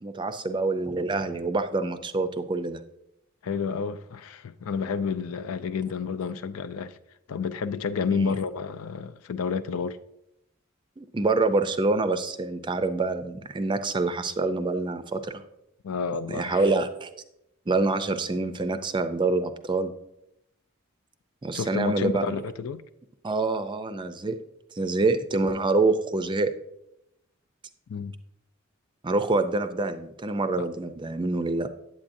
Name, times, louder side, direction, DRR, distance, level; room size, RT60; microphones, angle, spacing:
voice 1, 0.0-2.8 8.1-8.3 11.0-15.4 16.3-17.1 17.7-19.9 21.4-22.4 23.2-24.4 24.8-26.5 29.0-31.7, right 3 dB, 20° right, 0.4 m, -26 dB
voice 2, 3.4-7.0 7.3-10.0 15.8-16.7 21.5-22.8 27.9-28.1 30.6-30.7, left 5 dB, 85° left, 0.4 m, -30 dB
8.6 x 8.2 x 2.6 m
head